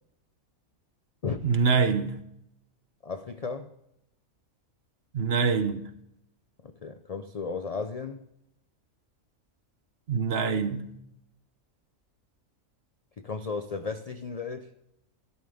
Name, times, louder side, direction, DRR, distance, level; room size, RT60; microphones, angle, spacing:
voice 1, 1.4-2.2 5.1-5.8 10.1-10.9, right 5 dB, 55° right, 0.9 m, -25 dB
voice 2, 3.0-3.7 6.6-8.2 13.2-14.7, left 4 dB, 65° left, 0.3 m, -34 dB
12.5 x 11.5 x 3.5 m
omnidirectional pair, 1.4 m